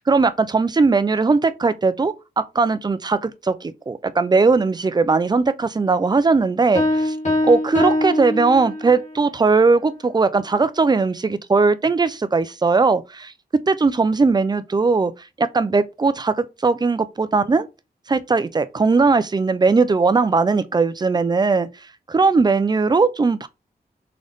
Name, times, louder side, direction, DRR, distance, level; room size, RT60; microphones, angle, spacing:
voice 1, 0.0-7.2 7.4-13.3 13.7-15.1 15.4-17.7 18.1-21.7 22.1-23.5, right 4 dB, 25° right, 0.4 m, -19 dB
Piano, 6.7-9.1, left 1 dB, 45° left, 1.3 m, -22 dB
3.8 x 3.8 x 3.4 m
wide cardioid pair, 150°, 17 cm